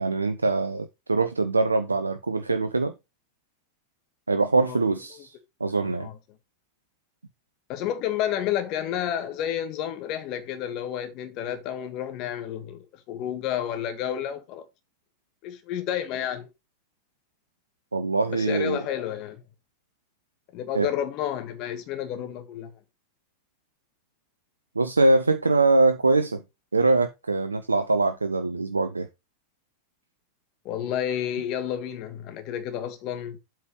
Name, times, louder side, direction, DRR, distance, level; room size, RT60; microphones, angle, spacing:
voice 1, 0.0-2.9 4.3-6.1 17.9-18.8 20.7-20.9 24.8-26.4 26.7-29.1, right 3 dB, 80° right, 0.6 m, -23 dB
voice 2, 5.8-6.2 7.7-14.6 15.4-16.5 18.3-19.4 20.5-22.7 30.6-33.4, left 10 dB, 40° left, 1.7 m, -30 dB
8.1 x 4.6 x 4.7 m
figure-of-eight pair, 90°, 0 cm